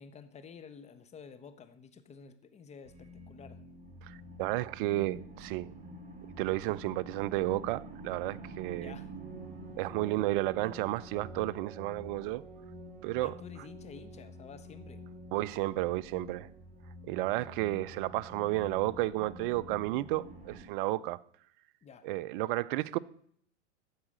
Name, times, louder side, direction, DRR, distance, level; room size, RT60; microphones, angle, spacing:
voice 1, 0.0-3.6 8.8-9.1 13.2-15.0 21.8-22.1, left 6 dB, 20° left, 1.0 m, -51 dB
sound 1, 2.8-20.6, right 1 dB, 20° right, 3.1 m, -48 dB
voice 2, 4.1-5.7 6.4-8.9 9.8-12.4 13.0-13.3 15.3-16.5 17.0-21.2 22.0-23.0, right 17 dB, 50° right, 0.5 m, -32 dB
14.5 x 4.9 x 7.4 m
hypercardioid pair, 125°, 35 cm